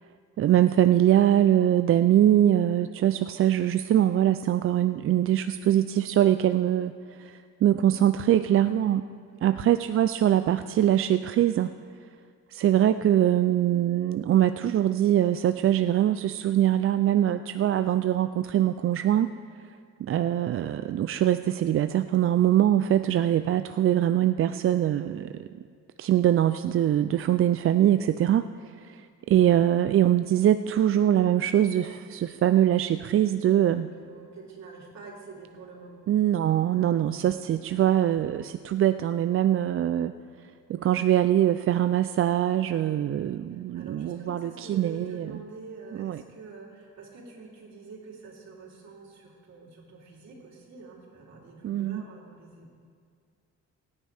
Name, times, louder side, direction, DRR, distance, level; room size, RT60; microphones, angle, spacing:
voice 1, 0.4-6.9 7.2-9.1 9.4-11.7 12.5-19.3 20.0-25.5 26.0-28.5 28.8-29.0 29.3-33.9 36.1-40.1 40.7-45.3 46.0-46.2 51.6-52.0, right 11 dB, 45° right, 11 dB, 0.4 m, -23 dB
voice 2, 8.2-8.7 9.4-9.7 28.1-28.3 33.4-33.6 34.0-36.1 36.6-36.9 43.5-52.7, right 4 dB, 65° right, -3 dB, 3.4 m, -46 dB
21.5 x 9.8 x 3.5 m, 2.2 s
cardioid pair, 90°, 30 cm